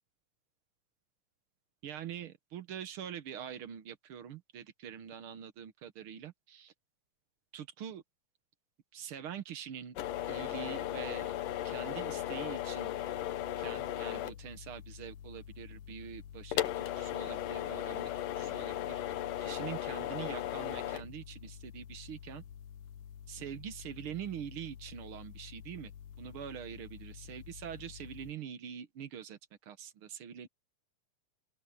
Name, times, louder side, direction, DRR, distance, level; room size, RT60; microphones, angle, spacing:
voice 1, 1.8-6.7 7.5-8.0 8.9-10.0 10.3-11.3 11.6-12.9 13.6-22.4 23.3-25.9 26.2-30.5, right 9 dB, 60° right, 1.5 m, -44 dB
sound 1, 10.0-28.3, left 12 dB, 80° left, 2.7 m, -39 dB
open air
omnidirectional pair, 3.7 m